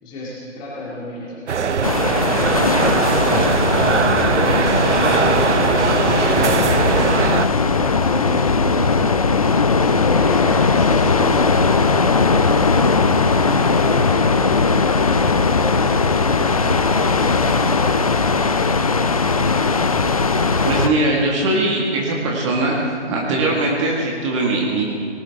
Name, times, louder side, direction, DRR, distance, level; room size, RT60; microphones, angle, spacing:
voice 1, 0.0-1.9 2.3-3.3 3.6-4.8 5.2-7.0 7.5-9.1 9.8-11.6 12.0-12.9 13.4-14.6 14.9-18.4, left 2 dB, 15° left, -5 dB, 2.2 m, -32 dB
sound 1, 1.5-7.5, right 7 dB, 75° right, 0.7 m, -20 dB
sound 2, 1.8-20.9, left 4 dB, 30° left, 0.5 m, -18 dB
voice 2, 20.6-22.8 23.1-24.8, right 2 dB, 25° right, -2 dB, 1.9 m, -20 dB
18.5 x 16.0 x 3.6 m, 2.1 s
figure-of-eight pair, 155°, 35 cm